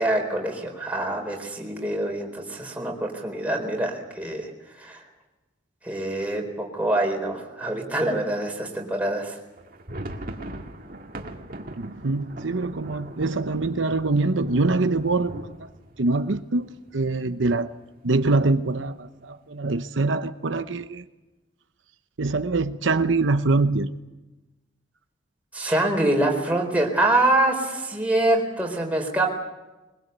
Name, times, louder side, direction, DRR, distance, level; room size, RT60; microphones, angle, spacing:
voice 1, 0.0-4.5 4.8-5.0 5.8-9.4 25.5-29.3, right 1 dB, 10° right, 0 dB, 4.2 m, -25 dB
sound 1, 9.5-17.3 17.6-17.7 17.9-18.2 18.7-19.2, right 1 dB, 50° right, 2.0 m, -40 dB
voice 2, 11.8-15.7 16.0-17.7 18.0-21.0 22.2-23.9, right 3 dB, 85° right, 9 dB, 0.8 m, -24 dB
22.5 x 21.0 x 8.1 m, 1.1 s
head